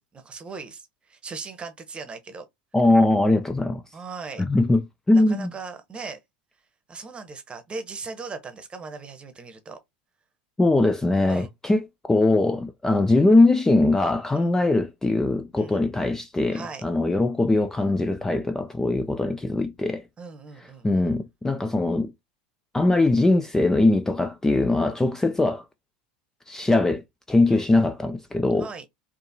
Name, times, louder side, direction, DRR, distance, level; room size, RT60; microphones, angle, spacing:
voice 1, 0.0-2.5 3.9-4.4 5.1-6.2 6.9-9.8 11.3-11.5 14.4-14.5 15.6-15.8 16.5-16.8 20.2-20.9 27.5-27.7 28.6-28.9, right 4 dB, 25° right, 0.9 m, -38 dB
voice 2, 2.7-3.8 4.4-5.5 10.6-20.0 20.8-22.1 22.7-25.6 26.5-27.0 27.3-28.7, left 2 dB, 10° left, 0.4 m, -21 dB
4.3 x 2.7 x 2.7 m
hypercardioid pair, 80°, 4 cm